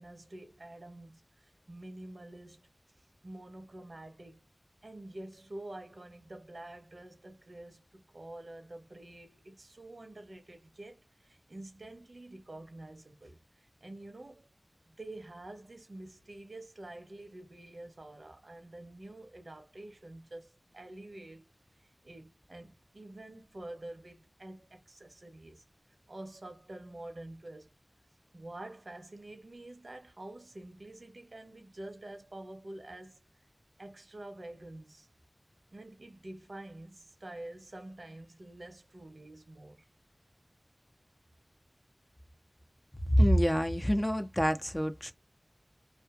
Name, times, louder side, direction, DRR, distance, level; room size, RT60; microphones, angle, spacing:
voice 1, 0.0-2.7 3.2-4.5 4.8-14.5 15.0-21.5 21.8-25.6 26.1-27.7 28.3-33.2 33.8-35.1 35.7-39.9, right 1 dB, 70° right, 0.8 m, -48 dB
voice 2, 43.1-45.1, equal, 15° left, 0.5 m, -26 dB
2.5 x 2.5 x 2.4 m
wide cardioid pair, 50°, 0 cm